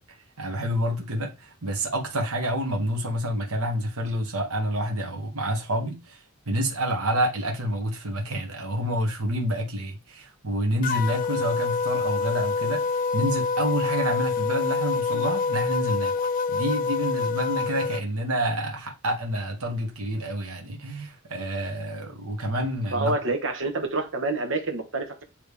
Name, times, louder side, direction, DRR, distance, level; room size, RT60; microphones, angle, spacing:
voice 1, 0.4-6.2 6.5-12.9 13.1-23.1, equal, 85° right, 1.6 m, -28 dB
sound 1, 10.8-18.0, left 5 dB, 40° left, 0.4 m, -26 dB
voice 2, 22.9-25.2, right 2 dB, 60° right, 1.3 m, -27 dB
8.8 x 3.3 x 3.5 m
head